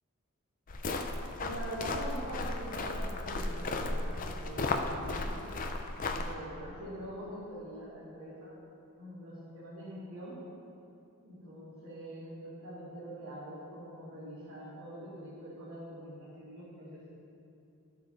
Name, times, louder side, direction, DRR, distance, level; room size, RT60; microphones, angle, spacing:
sound 1, 0.7-6.3, left 2 dB, 35° left, 0.5 m, -35 dB
voice 1, 1.4-5.3 6.1-8.6 9.0-10.4 11.2-17.1, equal, 65° right, -11 dB, 2.3 m, -44 dB
11.5 x 6.8 x 4.0 m, 2.7 s
head